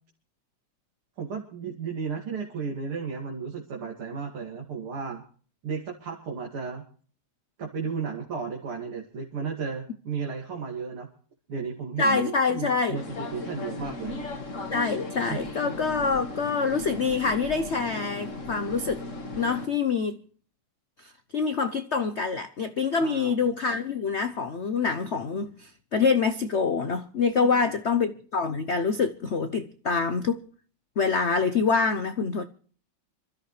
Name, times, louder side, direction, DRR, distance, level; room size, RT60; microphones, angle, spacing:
voice 1, 1.2-5.2 5.6-6.8 7.6-11.1 11.5-14.2 15.3-15.4 22.4-22.5 23.0-23.4 27.4-27.7, right 5 dB, 80° right, 3.2 m, -34 dB
voice 2, 12.0-13.0 14.7-19.0 19.3-20.2 21.0-30.4 31.0-32.4, left 5 dB, 65° left, 0.6 m, -26 dB
sound 1, 12.9-19.7, left 2 dB, 35° left, 2.0 m, -37 dB
26.0 x 13.5 x 3.2 m
omnidirectional pair, 2.3 m